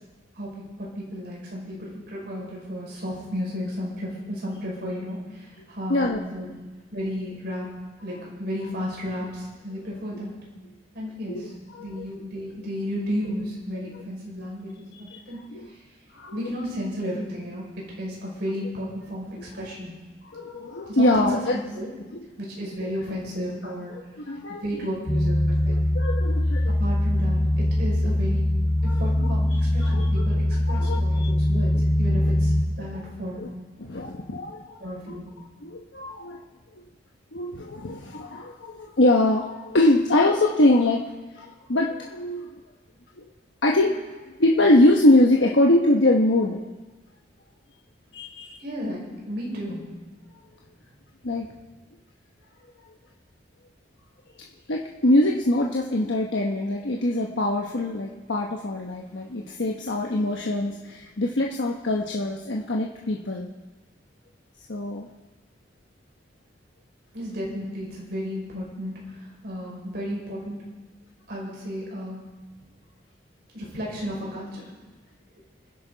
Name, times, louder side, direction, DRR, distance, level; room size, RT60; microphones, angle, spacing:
voice 1, 0.3-6.5 6.9-7.7 8.0-10.4 10.9-11.5 11.8-15.4 16.3-17.7 18.0-19.9 20.8-21.9 22.4-23.9 24.5-25.9 26.8-28.5 28.8-30.3 30.7-31.7 32.0-32.5 32.8-33.5 34.8-35.2 48.6-49.8 67.1-70.6 71.3-72.3 73.5-74.6, equal, 60° right, -4 dB, 5.8 m, -33 dB
voice 2, 5.9-6.2 11.3-12.1 14.9-15.2 15.5-15.7 16.1-16.5 20.3-21.5 24.2-24.7 25.7-26.8 28.0-28.1 28.8-29.1 29.8-30.0 30.7-31.3 32.8-33.0 33.4-33.5 33.8-35.2 35.6-36.4 37.3-41.0 41.4-42.5 43.2-43.3 43.6-44.0 44.4-46.6 48.1-48.6 51.2-51.5 54.7-63.5 64.7-65.1, left 1 dB, 75° left, -1 dB, 1.1 m, -23 dB
sound 1, 25.1-32.6, left 1 dB, 20° left, 1.1 m, -22 dB
27.0 x 10.5 x 4.0 m, 1.2 s
head